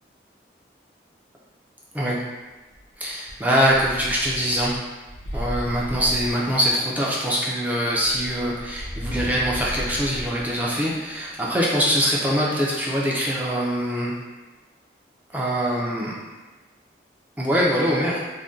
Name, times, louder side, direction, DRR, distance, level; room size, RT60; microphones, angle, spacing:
sound 1, 2.7-2.8 3.2-6.9 7.8-11.5, equal, 80° left, 0.6 m, -35 dB
voice 1, 3.0-4.9 5.3-14.1 15.3-16.1 17.4-18.2, equal, 10° right, -5 dB, 0.4 m, -23 dB
2.6 x 2.1 x 3.5 m, 1.2 s
head